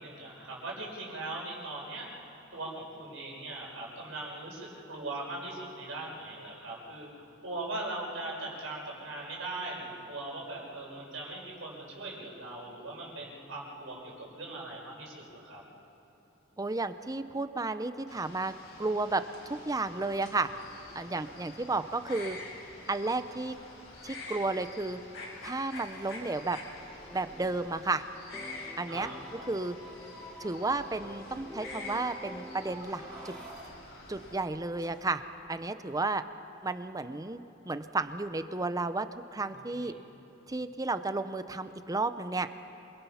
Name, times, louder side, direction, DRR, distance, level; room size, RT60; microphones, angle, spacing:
voice 1, 0.0-15.6 28.9-29.4 39.5-40.0, right 2 dB, 80° right, -3 dB, 5.6 m, -40 dB
voice 2, 16.6-18.5 18.8-20.5 20.9-22.4 22.9-23.6 24.0-25.0 25.4-26.6 27.1-28.0 28.8-29.1 29.5-29.8 30.4-33.3 34.1-35.2 35.5-36.2 36.6-37.4 37.7-39.9 40.5-42.5, right 3 dB, 20° right, 11 dB, 0.7 m, -32 dB
sound 1, 18.1-34.4, left 2 dB, 80° left, 5.2 m, -47 dB
sound 2, 25.7-28.1 29.1-29.2 29.5-29.6 30.1-30.6 32.3-35.5 38.0-38.1, right 2 dB, 50° right, 5.0 m, -52 dB
sound 3, 26.7-28.0 28.3-33.5, equal, 5° left, 1.7 m, -48 dB
27.5 x 21.0 x 5.7 m, 2.9 s
head